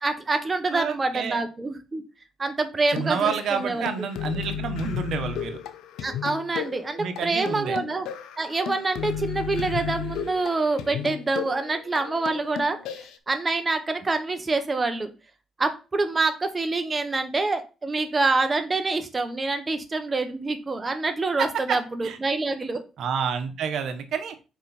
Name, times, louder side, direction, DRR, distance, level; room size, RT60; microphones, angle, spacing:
voice 1, 0.0-2.0 2.4-3.9 6.0-8.1 8.4-15.1 15.6-22.8, right 3 dB, 25° right, 7 dB, 1.3 m, -26 dB
voice 2, 0.7-1.4 2.9-5.6 7.0-7.8 21.4-21.8 22.0-22.2 23.0-24.3, right 7 dB, 75° right, 8 dB, 1.2 m, -29 dB
sound 1, 2.9-13.2, left 8 dB, 90° left, 0.7 m, -34 dB
6.0 x 5.0 x 4.3 m, 0.31 s
cardioid pair, 90°, 0 cm